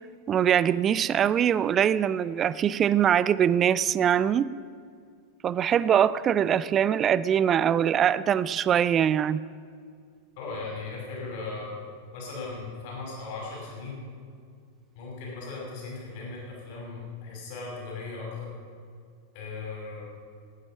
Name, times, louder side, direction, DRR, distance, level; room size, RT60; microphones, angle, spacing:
voice 1, 0.3-4.5 5.4-9.4, right 9 dB, 25° right, 18 dB, 0.5 m, -23 dB
voice 2, 10.4-11.7 12.1-14.0 15.0-18.5 19.3-20.1, left 3 dB, 50° left, -4 dB, 5.5 m, -37 dB
18.5 x 11.5 x 6.2 m, 2.3 s
figure-of-eight pair, 90°, 0 cm